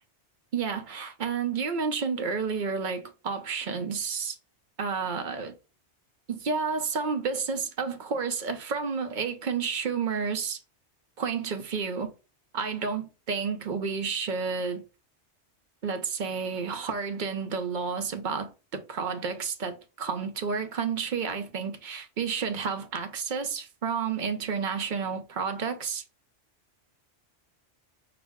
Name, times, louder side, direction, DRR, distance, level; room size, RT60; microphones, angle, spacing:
voice 1, 0.5-4.4 4.8-5.6 6.3-10.6 11.2-12.1 12.5-14.8 15.8-26.0, right 5 dB, 50° right, 0.6 m, -31 dB
5.8 x 2.1 x 3.5 m
omnidirectional pair, 1.2 m